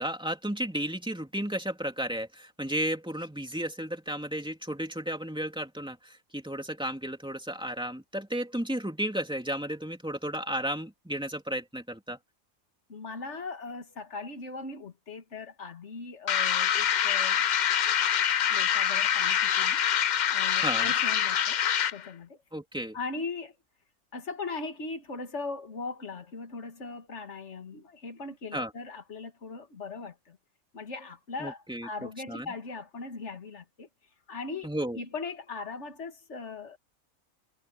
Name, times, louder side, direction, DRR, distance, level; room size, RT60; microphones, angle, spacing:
voice 1, 0.0-12.2 20.6-20.9 22.5-23.0 28.5-28.7 31.4-31.9 32.3-32.5 34.6-35.0, right 1 dB, 5° right, 2.9 m, -33 dB
voice 2, 12.9-17.4 18.5-19.8 20.3-21.6 21.9-22.4 22.9-23.5 24.1-30.4 30.7-33.9 34.3-34.7 34.9-36.8, left 4 dB, 55° left, 2.3 m, -39 dB
sound 1, 16.3-22.1, left 9 dB, 75° left, 0.4 m, -25 dB
omnidirectional pair, 1.4 m